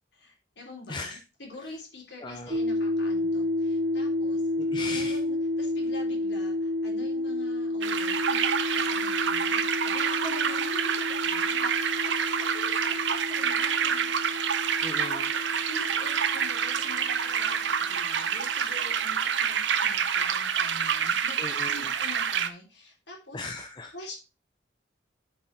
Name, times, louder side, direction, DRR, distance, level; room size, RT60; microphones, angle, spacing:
voice 1, 0.1-4.4 4.9-14.1 14.9-15.4 15.7-23.4 23.9-24.2, left 2 dB, 60° left, -1 dB, 3.3 m, -45 dB
voice 2, 0.9-1.2 1.6-1.7 2.2-2.6 4.6-5.2 14.8-15.3 21.4-21.9 23.3-23.9, left 3 dB, 25° left, 5 dB, 0.7 m, -38 dB
sound 1, 2.5-18.0, left 2 dB, 55° right, 1.1 m, -31 dB
sound 2, 7.8-22.5, right 7 dB, 75° right, 0.7 m, -27 dB
11.0 x 4.5 x 4.0 m, 0.30 s
head